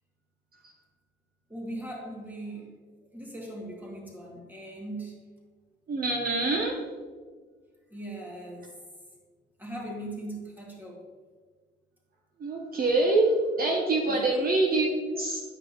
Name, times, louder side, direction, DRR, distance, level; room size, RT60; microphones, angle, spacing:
voice 1, 1.5-2.7 3.1-5.1 7.9-8.8 9.6-11.0 14.1-14.3, right 1 dB, 10° right, -3 dB, 2.2 m, -39 dB
voice 2, 5.9-6.7 12.4-13.3 13.6-15.4, right 2 dB, 50° right, 0 dB, 1.0 m, -25 dB
9.6 x 5.2 x 3.0 m, 1.5 s
cardioid pair, 90°, 20 cm